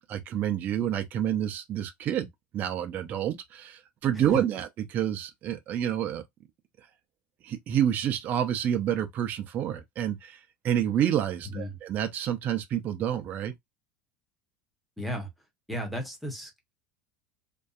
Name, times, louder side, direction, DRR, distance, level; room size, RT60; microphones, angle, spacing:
voice 1, 0.1-2.3 2.5-6.2 7.4-13.5, right 10 dB, 35° right, 0.4 m, -28 dB
voice 2, 15.0-15.3 15.7-16.7, equal, ahead, 0.8 m, -35 dB
2.6 x 2.2 x 2.3 m
supercardioid pair, 155°, 5 cm